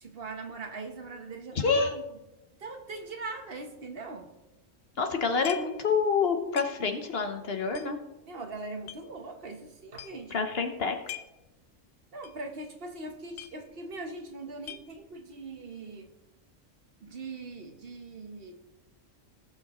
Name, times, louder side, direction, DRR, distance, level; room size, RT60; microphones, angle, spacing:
voice 1, 0.0-2.0 2.6-4.3 8.2-10.4 12.1-16.1 17.0-18.5, right 3 dB, 50° right, 4 dB, 1.3 m, -41 dB
voice 2, 1.5-1.9 5.0-8.0 10.3-11.0, left 5 dB, 50° left, 6 dB, 1.1 m, -27 dB
sound 1, 5.4-5.9 6.1-6.2 6.6-7.1 7.7-9.0 9.6-9.7 9.9-10.3 10.8-11.5 11.8-11.9 12.2-12.5 12.7-12.8 13.1-14.0 14.3-15.2, left 12 dB, 90° left, 1.0 m, -44 dB
18.5 x 6.4 x 3.1 m, 0.99 s
omnidirectional pair, 1.4 m